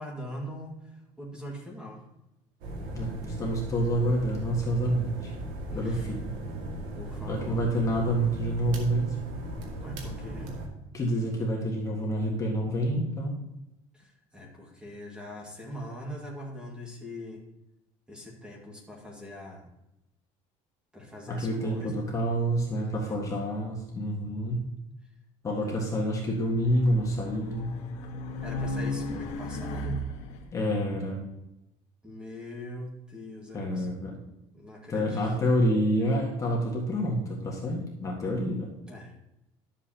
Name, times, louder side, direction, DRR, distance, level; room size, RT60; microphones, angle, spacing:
voice 1, 0.0-2.0 5.6-6.1 7.0-7.6 9.8-10.6 13.9-17.4 18.1-19.7 20.9-22.1 22.7-23.3 25.5-25.8 28.4-30.0 32.0-33.9 34.5-35.4 38.9-39.2, left 1 dB, 5° right, -1 dB, 2.0 m, -42 dB
sound 1, 2.6-10.7, right 1 dB, 75° right, 2.1 m, -37 dB
voice 2, 2.9-5.3 5.7-6.3 7.2-9.2 10.9-13.4 21.3-24.6 25.4-27.7 30.5-31.2 33.5-34.2 34.9-38.7, equal, 25° left, -2 dB, 1.6 m, -28 dB
Race car auto racing, 26.1-30.5, left 1 dB, 60° left, 1.6 m, -35 dB
12.0 x 7.5 x 2.9 m, 0.90 s
cardioid pair, 145°, 13 cm